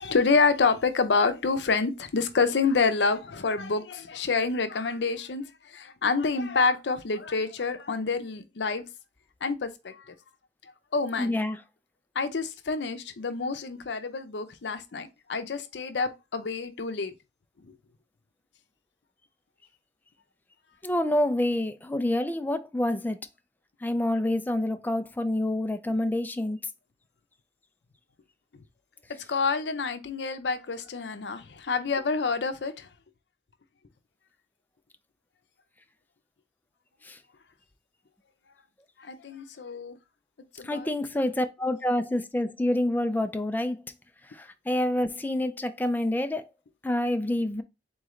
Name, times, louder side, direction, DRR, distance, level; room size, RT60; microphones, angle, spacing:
voice 1, 0.0-5.4 5.7-8.8 9.4-10.0 10.9-11.4 12.2-17.1 17.6-17.7 29.3-32.9 39.0-40.0 40.6-40.9, left 4 dB, 80° left, 0.6 m, -27 dB
voice 2, 11.2-11.6 20.8-23.2 23.8-26.6 40.7-43.8 44.7-46.4 46.8-47.6, left 1 dB, 10° left, 0.4 m, -27 dB
3.9 x 3.1 x 3.7 m
head